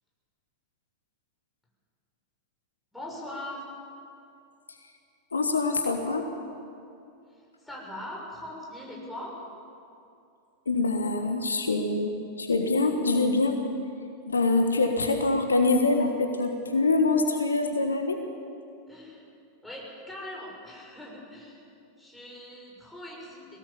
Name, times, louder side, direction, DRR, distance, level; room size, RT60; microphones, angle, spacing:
voice 1, 2.9-3.7 7.3-9.4 18.9-19.2 19.6-21.6 22.0-23.6, left 1 dB, 5° left, -4 dB, 6.6 m, -41 dB
voice 2, 5.3-6.3 10.6-13.6 14.3-18.2, left 3 dB, 75° left, 5 dB, 1.4 m, -25 dB
21.0 x 17.5 x 7.3 m, 2.6 s
figure-of-eight pair, 90°, 0 cm